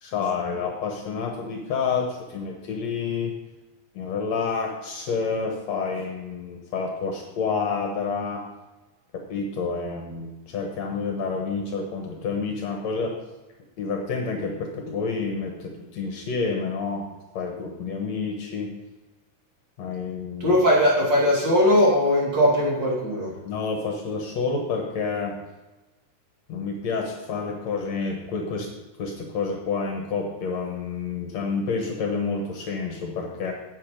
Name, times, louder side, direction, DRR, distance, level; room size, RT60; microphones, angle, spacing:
voice 1, 0.0-3.3 3.9-8.4 9.1-13.1 13.8-17.1 17.3-18.7 19.8-20.6 23.4-25.4 26.5-28.7 29.0-33.5, left 5 dB, 65° left, 2 dB, 2.2 m, -29 dB
voice 2, 20.4-23.3, left 1 dB, 35° right, -4 dB, 2.7 m, -19 dB
9.4 x 8.5 x 5.1 m, 1.1 s
omnidirectional pair, 3.7 m